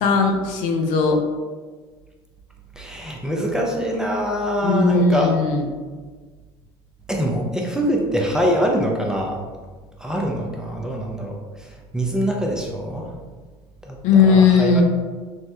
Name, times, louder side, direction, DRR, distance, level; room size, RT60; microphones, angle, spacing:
voice 1, 0.0-1.2 4.6-5.7 14.0-14.8, left 5 dB, 60° left, 3 dB, 0.4 m, -17 dB
voice 2, 2.8-5.3 7.1-9.4 10.0-11.4 11.9-13.1 13.9-14.8, equal, 5° right, -1 dB, 0.5 m, -24 dB
3.3 x 2.1 x 2.7 m, 1.4 s
hypercardioid pair, 75°, 15 cm